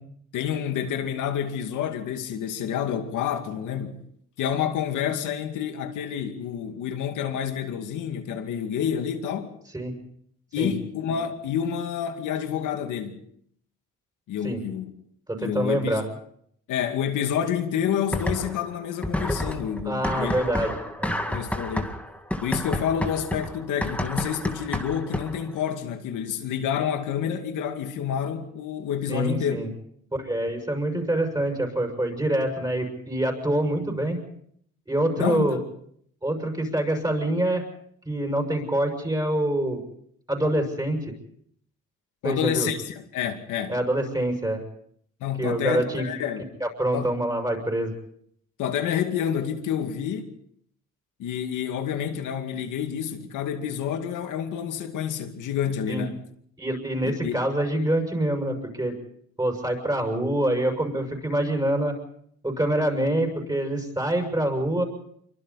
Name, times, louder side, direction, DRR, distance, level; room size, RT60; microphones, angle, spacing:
voice 1, 0.3-4.0 4.4-9.5 10.5-13.2 14.3-14.9 15.4-16.0 16.7-20.3 21.3-21.9 22.4-29.6 35.2-35.6 42.2-43.8 45.2-46.4 46.9-47.1 48.6-50.3 51.2-56.2 57.0-57.4, left 8 dB, 85° left, 2.4 m, -28 dB
voice 2, 15.3-16.0 19.8-21.2 29.1-29.7 30.1-34.2 34.9-35.6 36.2-37.6 38.0-39.8 40.3-41.1 42.2-42.7 43.7-44.6 45.4-46.1 46.6-47.9 55.9-56.1 56.6-59.0 59.4-62.0 62.4-64.8, right 1 dB, 15° right, 6.5 m, -25 dB
sound 1, 18.1-18.7 19.0-25.5, left 1 dB, 5° left, 2.1 m, -30 dB
26.5 x 24.0 x 4.2 m
cardioid pair, 90°, 30 cm